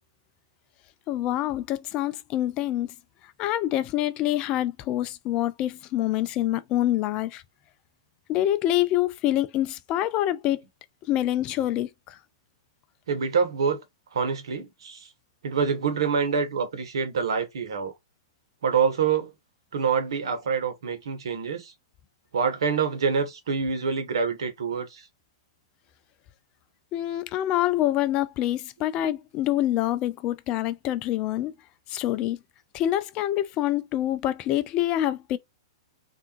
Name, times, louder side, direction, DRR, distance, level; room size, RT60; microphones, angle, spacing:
voice 1, 1.1-2.9 3.4-7.4 8.3-10.6 11.1-12.1 26.9-31.5 31.9-32.4 32.7-35.4, left 13 dB, 35° left, 0.4 m, -26 dB
voice 2, 13.1-13.8 14.1-15.1 15.4-17.9 18.6-19.3 19.7-21.7 22.3-25.0, right 6 dB, 70° right, 1.1 m, -26 dB
3.4 x 2.6 x 2.9 m
hypercardioid pair, 115°, 3 cm